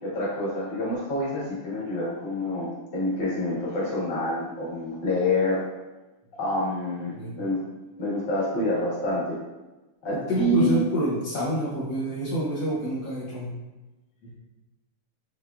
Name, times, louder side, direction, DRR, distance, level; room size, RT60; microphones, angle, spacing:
voice 1, 0.0-5.6 6.4-7.6 8.0-9.4 10.0-10.8, left 1 dB, 30° left, -7 dB, 1.4 m, -27 dB
voice 2, 10.1-13.5 14.2-14.3, equal, 65° left, -7 dB, 1.5 m, -27 dB
4.5 x 3.5 x 2.3 m, 1.1 s
omnidirectional pair, 2.3 m